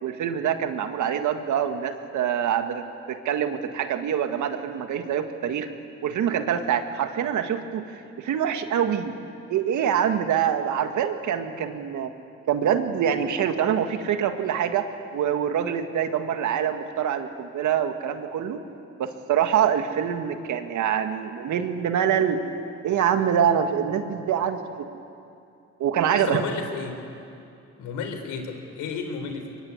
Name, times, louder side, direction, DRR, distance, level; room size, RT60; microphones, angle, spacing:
voice 1, 0.0-5.7 6.0-7.8 8.2-9.1 9.5-12.1 12.5-18.6 19.0-22.4 22.8-24.9 25.8-26.4, right 9 dB, 75° right, 7 dB, 1.9 m, -25 dB
voice 2, 26.1-27.0 27.8-29.6, left 5 dB, 85° left, 6 dB, 3.7 m, -32 dB
23.0 x 22.5 x 9.7 m, 2.6 s
cardioid pair, 90°, 30 cm